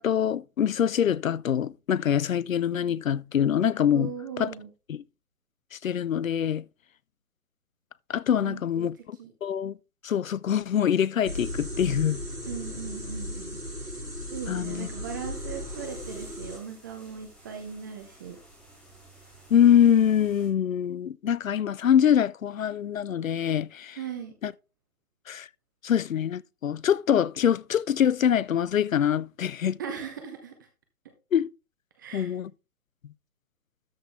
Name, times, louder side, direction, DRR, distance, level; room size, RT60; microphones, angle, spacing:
voice 1, 0.0-4.1 4.4-4.5 4.9-5.0 5.7-6.6 8.1-9.7 10.0-12.2 14.5-14.9 19.5-24.0 24.4-24.5 25.3-25.5 25.8-29.8 31.3-31.5 32.1-32.5, left 9 dB, 60° left, 0.6 m, -24 dB
voice 2, 3.9-4.7 8.4-9.3 12.5-13.6 14.3-18.4 24.0-24.3 29.8-30.6 32.0-32.4, right 7 dB, 15° right, 0.7 m, -38 dB
sound 1, 11.2-16.6, left 1 dB, 90° right, 5.4 m, -36 dB
sound 2, 15.2-20.5, right 2 dB, ahead, 2.7 m, -54 dB
13.0 x 5.9 x 3.4 m
figure-of-eight pair, 140°, 45 cm